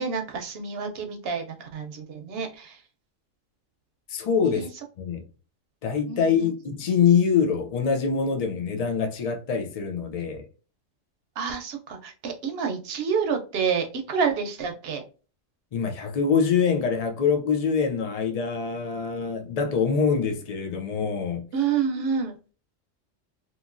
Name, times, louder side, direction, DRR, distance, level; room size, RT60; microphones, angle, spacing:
voice 1, 0.0-2.8 4.4-4.7 6.1-6.5 11.4-15.0 21.5-22.3, right 6 dB, 60° right, 0.8 m, -28 dB
voice 2, 4.1-4.7 5.0-5.2 5.8-10.5 15.7-21.5, left 6 dB, 65° left, 0.3 m, -24 dB
2.9 x 2.5 x 2.5 m
omnidirectional pair, 1.3 m